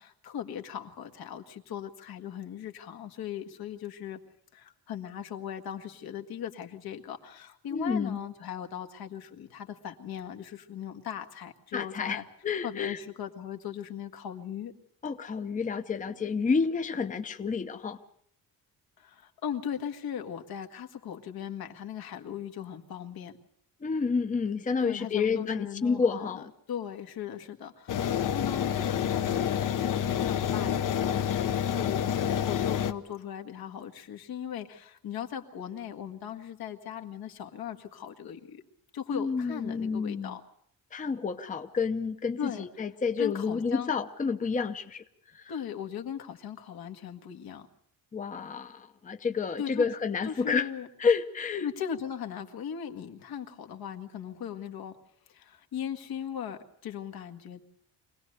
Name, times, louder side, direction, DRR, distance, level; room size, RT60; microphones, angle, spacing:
voice 1, 0.0-4.2 4.5-12.2 12.6-14.7 19.0-23.3 24.8-26.4 26.7-38.6 38.9-40.4 42.4-42.6 43.2-43.9 45.5-47.7 49.6-49.9 50.2-50.9 51.6-55.0 55.3-57.6, left 9 dB, 75° left, 5 dB, 1.9 m, -38 dB
voice 2, 7.7-8.2 11.7-13.0 15.0-18.0 23.8-26.5 39.1-40.3 40.9-45.0 45.3-45.5 48.1-50.7 51.0-51.7, left 5 dB, 20° left, 7 dB, 0.8 m, -29 dB
sound 1, 27.9-32.9, left 9 dB, 60° left, 1.0 m, -28 dB
24.0 x 18.0 x 6.6 m, 0.68 s
cardioid pair, 150°, 37 cm